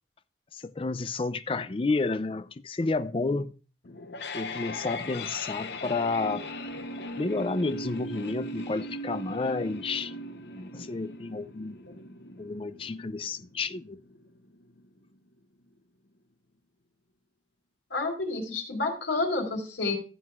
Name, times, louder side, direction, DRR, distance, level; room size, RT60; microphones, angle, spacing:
voice 1, 0.5-3.6 4.3-6.5 7.2-10.1 10.5-11.8 12.4-14.0, left 3 dB, 30° left, 0.4 m, -31 dB
sound 1, 3.8-14.8, left 1 dB, 65° left, 0.8 m, -39 dB
voice 2, 17.9-20.0, left 3 dB, 90° left, 4.0 m, -29 dB
15.0 x 7.9 x 2.4 m
head